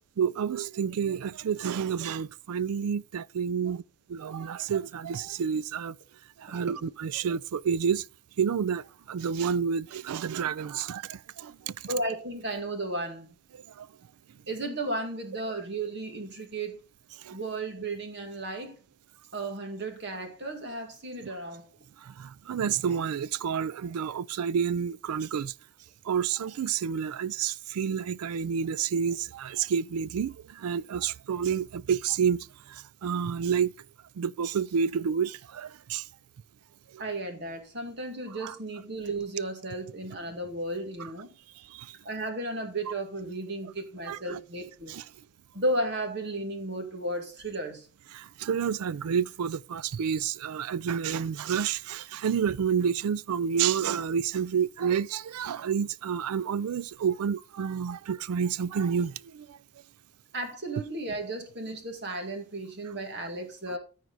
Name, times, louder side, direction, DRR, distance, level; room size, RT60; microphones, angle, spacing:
voice 1, 0.2-3.8 4.1-6.0 6.4-8.0 8.4-11.7 13.8-13.9 17.3-17.4 22.0-25.5 26.1-33.7 34.2-36.0 36.9-37.0 38.4-38.5 41.7-41.9 44.1-44.4 44.9-45.0 48.1-59.6, right 7 dB, 85° right, 0.4 m, -29 dB
voice 2, 11.9-13.3 14.5-16.8 17.3-18.8 19.3-21.7 37.0-41.3 42.0-45.0 45.5-47.9 60.3-63.8, right 1 dB, 50° right, 2.0 m, -34 dB
14.0 x 4.7 x 4.0 m
head